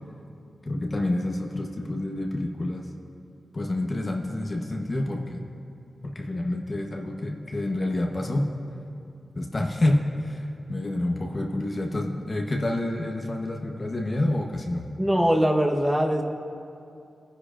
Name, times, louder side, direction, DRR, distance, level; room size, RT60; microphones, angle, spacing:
voice 1, 0.7-2.9 3.5-5.4 6.0-8.5 9.3-14.9, left 1 dB, 35° left, 1 dB, 1.0 m, -28 dB
voice 2, 15.0-16.2, equal, 10° right, 1 dB, 1.1 m, -22 dB
22.0 x 10.0 x 2.5 m, 2.6 s
wide cardioid pair, 95°, 0 cm